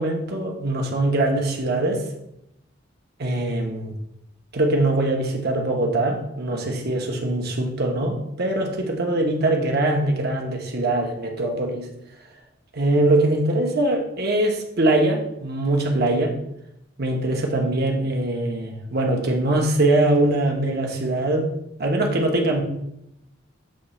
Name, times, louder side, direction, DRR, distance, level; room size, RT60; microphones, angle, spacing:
voice 1, 0.0-2.1 3.2-3.9 4.5-11.9 12.7-16.3 17.0-21.5 21.8-22.6, right 2 dB, 55° right, 1 dB, 1.1 m, -22 dB
7.6 x 3.0 x 4.3 m, 0.80 s
head